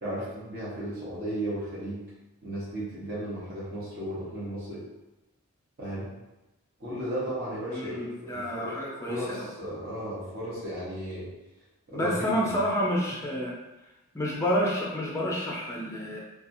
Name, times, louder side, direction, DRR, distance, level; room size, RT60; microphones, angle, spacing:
voice 1, 0.0-2.0 2.4-4.8 5.8-6.1 6.8-8.8 9.0-11.3 11.9-12.5, right 1 dB, 40° right, -9 dB, 0.8 m, -35 dB
voice 2, 7.7-9.5 11.9-13.5 14.1-16.2, equal, 15° left, -3 dB, 0.4 m, -29 dB
2.7 x 2.3 x 2.6 m, 1.0 s
head